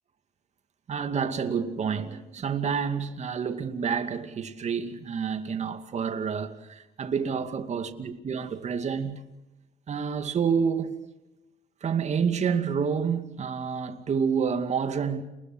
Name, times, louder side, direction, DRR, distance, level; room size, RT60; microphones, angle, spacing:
voice 1, 0.9-9.2 9.9-11.0 11.8-15.2, right 6 dB, 40° right, 2.4 m, -28 dB
29.5 x 21.0 x 6.3 m
cardioid pair, 110°, 17 cm